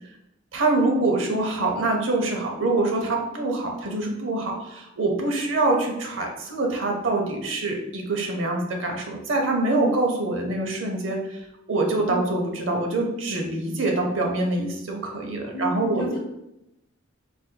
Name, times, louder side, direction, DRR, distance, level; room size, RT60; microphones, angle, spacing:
voice 1, 0.5-11.4 11.7-16.2, right 2 dB, 75° right, 2 dB, 0.7 m, -25 dB
voice 2, 15.5-16.2, right 1 dB, 25° left, -5 dB, 0.5 m, -31 dB
4.2 x 2.7 x 2.2 m, 0.86 s
head